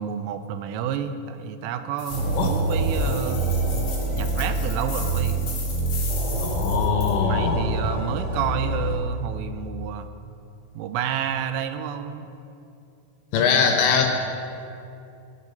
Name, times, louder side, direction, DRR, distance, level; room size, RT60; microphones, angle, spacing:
voice 1, 0.0-3.5 4.1-5.5 7.3-10.1 10.8-12.3, right 9 dB, 85° right, 9 dB, 3.2 m, -30 dB
sound 1, 2.0-7.1, left 4 dB, 55° left, 1.8 m, -37 dB
sound 2, 2.1-9.0, right 2 dB, 65° right, 5.0 m, -26 dB
voice 2, 6.4-7.6 13.3-14.1, left 6 dB, 75° left, 3 dB, 2.9 m, -22 dB
20.5 x 7.5 x 5.3 m, 2.6 s
omnidirectional pair, 5.9 m